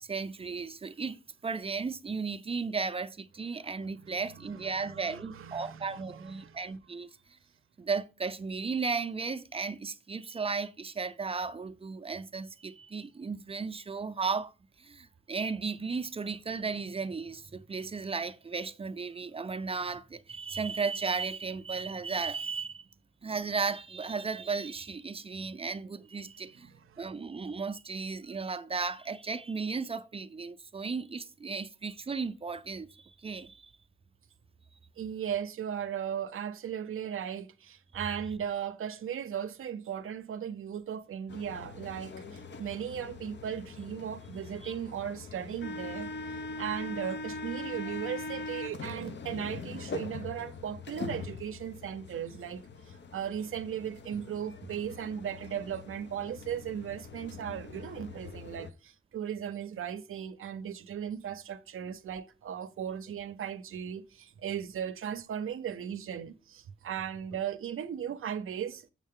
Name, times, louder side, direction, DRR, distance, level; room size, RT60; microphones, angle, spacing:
voice 1, 0.0-7.1 7.8-14.5 14.8-22.9 23.2-26.7 27.0-33.7 44.6-44.7, right 4 dB, 25° right, 0.5 m, -35 dB
voice 2, 4.0-6.6 26.6-27.0 35.0-68.9, right 9 dB, 80° right, 0.6 m, -37 dB
sound 1, 41.3-58.7, left 3 dB, 60° left, 0.7 m, -42 dB
7.1 x 6.5 x 3.6 m
wide cardioid pair, 125°, 21 cm